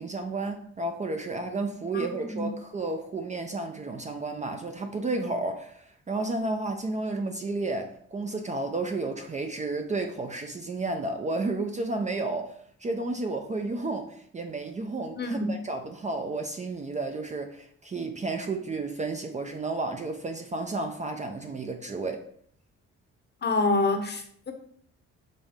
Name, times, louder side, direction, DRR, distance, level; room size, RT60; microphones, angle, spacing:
voice 1, 0.0-22.2, right 2 dB, 25° right, 0.4 m, -32 dB
voice 2, 1.9-2.5 15.2-15.5 23.4-24.5, left 2 dB, 35° left, 0.8 m, -27 dB
5.2 x 2.6 x 3.4 m
cardioid pair, 90°, 30 cm